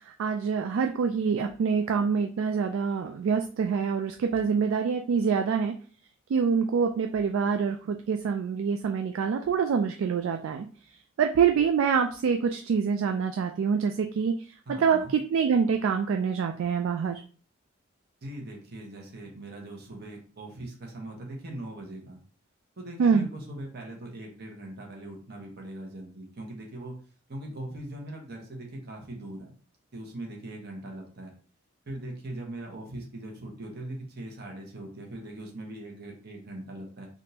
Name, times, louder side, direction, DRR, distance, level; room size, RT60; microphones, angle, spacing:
voice 1, 0.2-5.7 6.3-10.7 11.2-14.3 14.7-17.2 23.0-23.3, right 6 dB, 70° right, 5 dB, 0.3 m, -25 dB
voice 2, 14.7-15.1 18.2-22.2 22.8-27.0 27.3-29.5 29.9-31.3 31.9-37.1, right 1 dB, 55° right, 1 dB, 1.0 m, -40 dB
3.5 x 2.5 x 2.8 m, 0.41 s
head